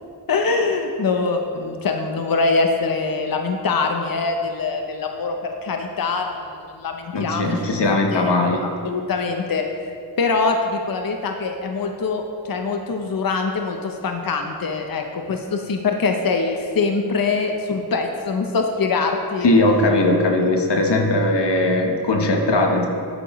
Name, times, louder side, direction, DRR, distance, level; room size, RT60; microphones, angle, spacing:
voice 1, 0.3-7.5 8.1-8.3 8.8-9.6 10.2-19.5, left 4 dB, 55° left, 4 dB, 0.7 m, -23 dB
voice 2, 7.1-8.7 19.4-22.9, left 2 dB, 90° left, 3 dB, 1.1 m, -19 dB
12.0 x 8.4 x 3.0 m, 2.4 s
wide cardioid pair, 80°, 40 cm